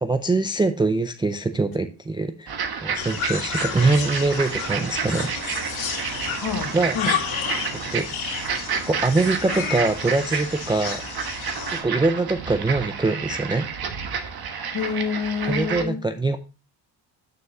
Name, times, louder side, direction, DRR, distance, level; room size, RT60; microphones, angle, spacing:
voice 1, 0.0-2.5 2.8-5.3 6.7-7.0 7.9-8.1 8.7-11.0 11.7-13.7 15.5-16.4, right 3 dB, 10° right, 7 dB, 0.4 m, -23 dB
sound 1, 2.5-15.8, right 6 dB, 50° right, 1.3 m, -30 dB
sound 2, 3.0-11.8, left 8 dB, 70° left, 2.1 m, -32 dB
voice 2, 6.4-7.1 14.7-16.0, left 6 dB, 50° left, 5 dB, 1.7 m, -27 dB
9.2 x 6.5 x 2.9 m, 0.33 s
cardioid pair, 110°, 48 cm